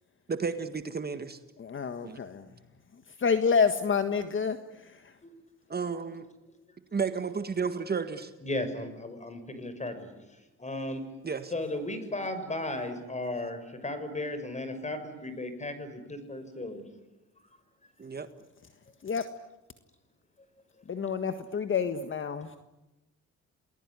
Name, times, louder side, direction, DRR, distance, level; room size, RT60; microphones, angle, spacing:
voice 1, 0.3-1.4 2.0-2.2 5.7-6.3 6.9-8.3 11.2-11.5 18.0-18.3, right 5 dB, 30° right, 9 dB, 1.7 m, -32 dB
voice 2, 1.6-2.5 3.2-5.1 19.0-19.3 20.9-22.6, left 6 dB, 40° left, 9 dB, 1.6 m, -28 dB
voice 3, 8.4-10.1 10.6-11.0 11.5-16.8, left 1 dB, 25° left, 10 dB, 6.1 m, -35 dB
29.0 x 20.0 x 9.8 m, 1.0 s
cardioid pair, 90°, 30 cm